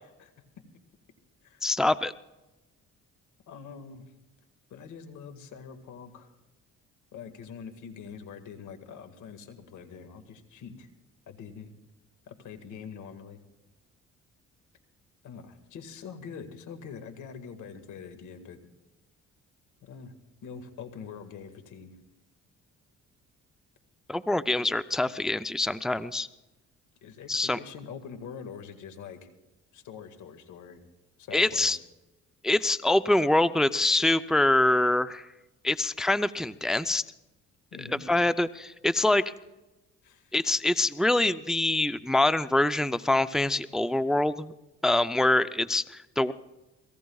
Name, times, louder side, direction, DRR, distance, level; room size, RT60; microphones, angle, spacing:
voice 1, 1.6-2.1 24.1-26.3 27.3-27.6 31.3-31.8 32.4-35.3 35.6-37.0 38.1-39.2 40.3-44.5 44.8-46.3, left 2 dB, ahead, 13 dB, 0.4 m, -25 dB
voice 2, 3.5-4.1 4.7-6.3 7.1-10.9 11.3-11.7 12.3-13.4 15.2-18.7 19.8-20.1 20.4-21.9 27.0-29.3 29.7-30.8 31.2-31.8 37.7-38.1 40.0-40.4, left 6 dB, 80° left, 8 dB, 1.9 m, -44 dB
28.0 x 18.5 x 2.4 m, 1.0 s
cardioid pair, 90°, 30 cm